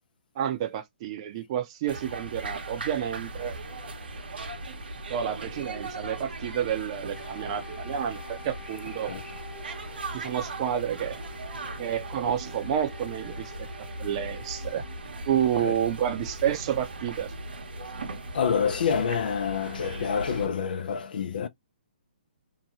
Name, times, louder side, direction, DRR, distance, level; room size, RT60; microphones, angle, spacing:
voice 1, 0.4-3.6 5.1-9.1 10.1-11.2 11.8-13.7 14.0-14.8 15.3-17.3, right 9 dB, 35° right, 0.7 m, -29 dB
sound 1, 1.9-20.5, right 2 dB, 85° right, 1.0 m, -38 dB
Wind instrument woodwind instrument, 7.1-15.1, left 4 dB, 10° left, 0.6 m, -49 dB
voice 2, 18.3-21.5, left 7 dB, 60° left, 0.6 m, -27 dB
2.8 x 2.2 x 3.0 m
hypercardioid pair, 150°, 5 cm